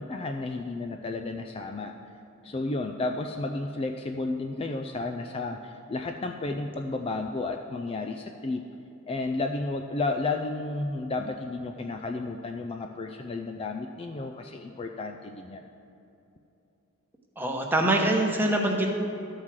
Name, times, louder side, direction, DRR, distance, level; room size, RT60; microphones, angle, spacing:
voice 1, 0.0-1.9 2.4-8.6 9.1-15.6, left 3 dB, 25° left, 4 dB, 0.3 m, -32 dB
voice 2, 17.4-18.9, right 1 dB, 10° right, 0 dB, 1.0 m, -24 dB
12.0 x 4.8 x 7.3 m, 2.8 s
head